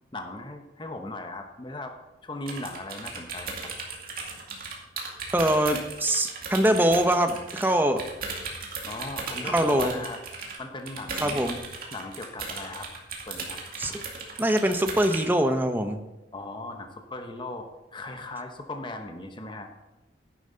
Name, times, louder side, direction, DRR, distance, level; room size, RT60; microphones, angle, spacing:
voice 1, 0.1-1.9 2.2-3.6 8.9-10.2 10.6-11.6 11.9-12.9 13.3-13.6 16.3-17.7 17.9-19.7, left 2 dB, 25° left, 5 dB, 0.9 m, -37 dB
sound 1, 2.5-7.7 8.0-15.3, right 4 dB, 55° right, 2.2 m, -36 dB
voice 2, 5.3-8.0 9.4-9.9 11.2-11.6 13.8-13.9 14.4-16.0, right 1 dB, 10° right, 6 dB, 0.8 m, -23 dB
11.0 x 10.0 x 3.9 m, 0.98 s
head